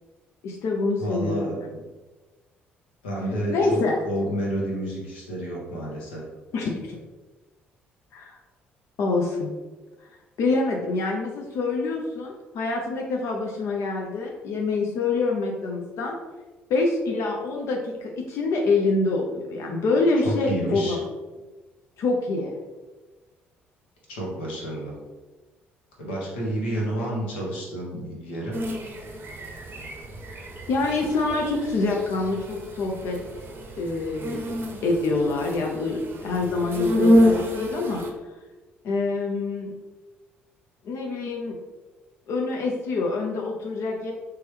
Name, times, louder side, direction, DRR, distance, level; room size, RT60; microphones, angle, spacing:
voice 1, 0.4-1.5 3.5-4.0 6.5-7.0 8.1-8.4 9.0-9.5 10.4-16.2 16.7-21.0 22.0-22.5 30.3-30.4 30.7-33.2 33.8-34.6 34.8-38.0 38.8-39.7 40.8-41.6 42.3-44.1, left 3 dB, 50° left, 0 dB, 0.5 m, -26 dB
voice 2, 1.0-1.8 3.0-6.3 20.2-21.0 24.1-24.9 26.0-28.6, right 1 dB, 70° left, -3 dB, 0.9 m, -30 dB
sound 1, 28.5-38.1, equal, 40° right, 0.6 m, -27 dB
3.3 x 3.0 x 3.2 m, 1.2 s
figure-of-eight pair, 50°, 6 cm